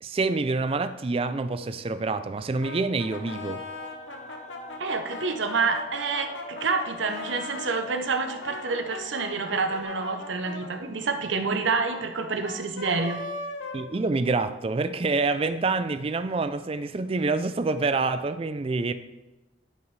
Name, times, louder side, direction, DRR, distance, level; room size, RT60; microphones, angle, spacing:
voice 1, 0.0-3.6 13.7-18.9, right 3 dB, 30° right, 11 dB, 0.4 m, -27 dB
Brass instrument, 2.6-7.8 8.2-14.6, left 3 dB, 75° left, 1.1 m, -39 dB
sound 1, 3.0-9.8, equal, 35° left, 0.7 m, -44 dB
voice 2, 4.8-13.2, right 4 dB, 70° right, 6 dB, 0.8 m, -28 dB
11.0 x 6.0 x 3.2 m, 1.1 s
head